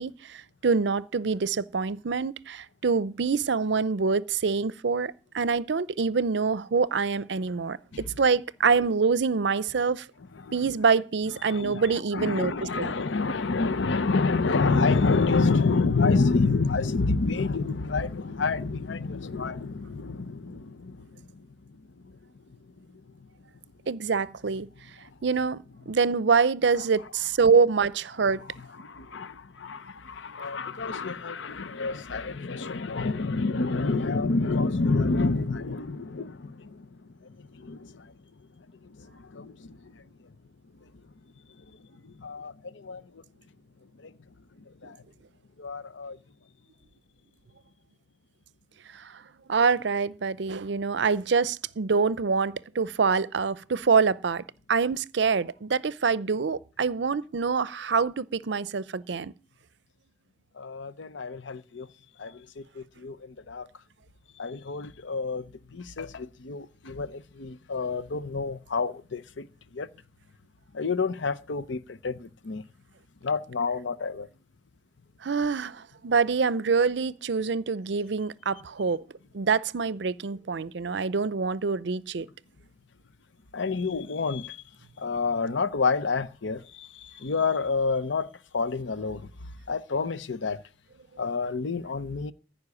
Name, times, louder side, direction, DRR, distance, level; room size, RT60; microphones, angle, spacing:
voice 1, 0.0-7.8 8.2-10.1 10.5-12.5 12.8-12.9 23.9-24.7 25.2-28.4 44.8-44.9 48.9-49.2 49.5-59.3 75.2-79.0 79.3-82.3, right 5 dB, 65° right, 0.5 m, -25 dB
voice 2, 10.3-10.8 11.4-22.2 22.5-22.6 25.0-25.1 28.8-38.1 38.6-40.0 40.8-40.9 41.6-41.7 41.9-43.2 44.0-44.1 44.7-45.0 45.6-46.2 60.5-61.9 62.2-63.7 64.4-69.9 70.7-72.6 73.2-74.3 83.5-84.6 85.0-89.3 89.7-90.6 91.2-92.3, left 4 dB, 75° left, 0.7 m, -29 dB
15.0 x 5.5 x 9.6 m
head